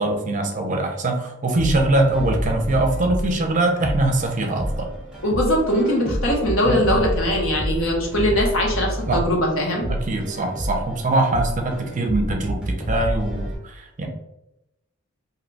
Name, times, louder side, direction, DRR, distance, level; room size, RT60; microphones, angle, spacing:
voice 1, 0.0-4.9 6.7-6.9 9.1-9.2 9.9-12.6 12.9-13.5 14.0-14.1, right 2 dB, 40° right, 3 dB, 0.5 m, -22 dB
sound 1, 1.6-13.6, equal, 5° right, 0.7 m, -29 dB
voice 2, 5.2-9.9, equal, 75° left, -1 dB, 0.9 m, -21 dB
2.7 x 2.2 x 3.9 m, 0.88 s
head